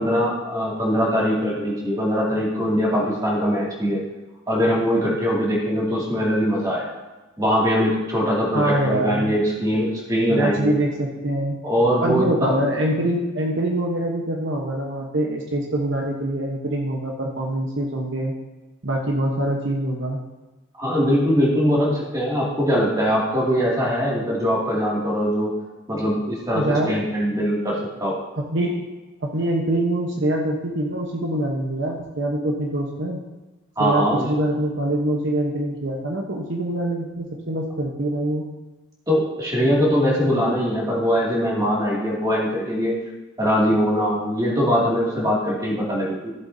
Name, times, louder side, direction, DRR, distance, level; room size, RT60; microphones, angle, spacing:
voice 1, 0.0-4.0 4.5-6.9 7.4-10.7 11.6-12.5 20.8-25.5 25.9-28.2 33.8-34.3 39.1-42.9 43.4-46.3, equal, 15° right, -5 dB, 2.3 m, -22 dB
voice 2, 8.5-9.4 10.3-11.6 12.0-18.3 18.8-20.2 26.5-27.0 28.4-28.8 29.2-33.2 33.8-38.4, right 1 dB, 55° right, 0 dB, 1.1 m, -24 dB
14.5 x 7.7 x 2.7 m, 1.2 s
head